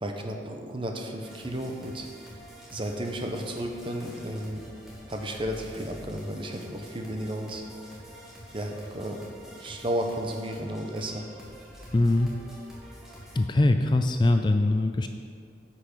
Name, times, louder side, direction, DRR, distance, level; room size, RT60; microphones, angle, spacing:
voice 1, 0.0-2.1 2.7-4.6 5.1-7.6 8.5-9.2 9.6-11.3, equal, 30° right, 3 dB, 0.9 m, -33 dB
sound 1, 1.2-13.4, equal, 5° right, 1.9 m, -47 dB
voice 2, 11.9-12.4 13.3-15.1, left 2 dB, 25° left, 6 dB, 0.4 m, -22 dB
9.9 x 5.9 x 6.8 m, 2.3 s
head